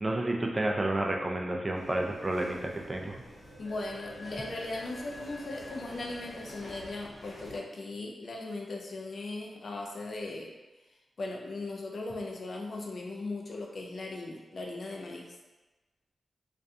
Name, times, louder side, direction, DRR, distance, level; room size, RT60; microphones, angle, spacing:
voice 1, 0.0-3.1, right 1 dB, 25° right, 0 dB, 0.3 m, -30 dB
sound 1, 1.7-7.6, left 1 dB, 80° left, 0.8 m, -46 dB
voice 2, 3.6-10.5 11.2-15.3, left 2 dB, 50° left, 0 dB, 0.4 m, -38 dB
2.4 x 2.2 x 2.6 m, 1.1 s
wide cardioid pair, 105°, 0 cm